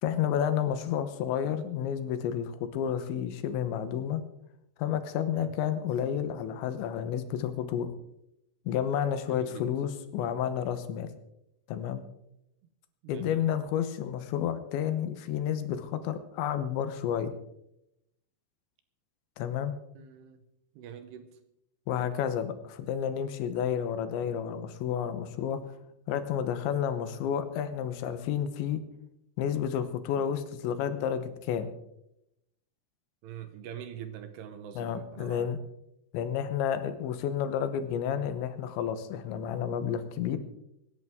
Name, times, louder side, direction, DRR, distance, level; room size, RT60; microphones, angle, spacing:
voice 1, 0.0-4.2 4.8-7.9 8.7-11.1 11.7-12.0 13.1-17.3 19.4-19.7 21.9-25.6 26.1-28.8 29.4-31.7 34.8-35.6 36.1-40.4, left 9 dB, 80° left, 10 dB, 3.3 m, -31 dB
voice 2, 9.2-9.7 13.0-13.5 19.9-20.4 20.7-21.4 33.2-35.5, right 9 dB, 75° right, 9 dB, 2.9 m, -44 dB
25.0 x 11.0 x 3.6 m, 0.82 s
omnidirectional pair, 5.2 m